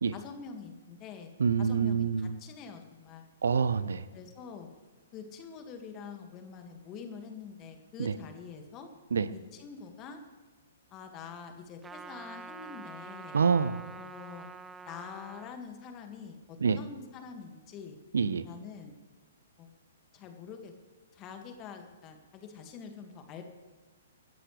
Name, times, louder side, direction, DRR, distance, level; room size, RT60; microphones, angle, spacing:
voice 1, 0.1-1.3 1.6-3.3 4.1-4.7 5.1-8.9 9.3-10.2 10.9-13.4 14.0-14.5 14.9-18.0 18.5-18.9 19.6-19.7 20.1-20.7 21.1-23.4, left 6 dB, 25° left, 5 dB, 2.1 m, -45 dB
voice 2, 1.4-2.4 3.4-4.0 8.0-8.1 9.1-9.3 13.3-13.9 16.6-16.8 18.1-18.5, right 6 dB, 70° right, 16 dB, 0.7 m, -26 dB
Trumpet, 11.8-15.5, right 4 dB, 10° right, 0.4 m, -46 dB
27.0 x 13.5 x 3.4 m, 1.3 s
figure-of-eight pair, 120°, 0 cm